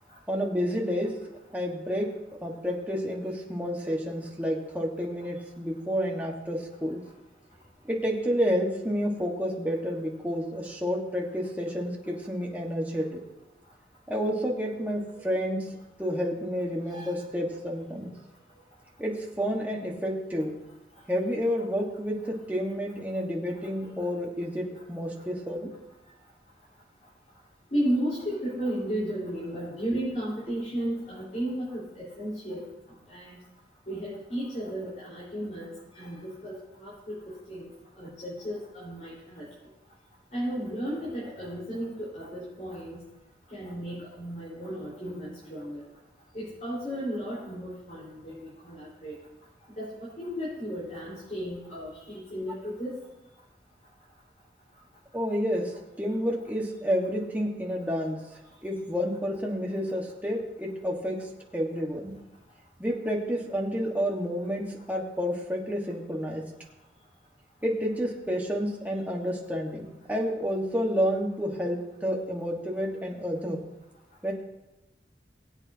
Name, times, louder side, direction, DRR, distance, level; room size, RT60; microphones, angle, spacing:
voice 1, 0.3-1.2 1.5-2.1 2.4-7.0 7.9-13.2 14.1-15.7 16.0-18.1 19.0-20.5 21.1-25.7 55.1-58.2 58.6-62.1 62.8-66.5 67.6-73.6 74.2-74.3, equal, 10° right, -2 dB, 1.5 m, -30 dB
voice 2, 27.7-32.6 33.1-33.4 33.9-37.7 38.0-39.4 40.3-43.0 43.5-45.8 46.3-49.1 49.8-53.0, equal, 45° left, -9 dB, 4.3 m, -34 dB
21.0 x 8.2 x 2.8 m, 0.99 s
head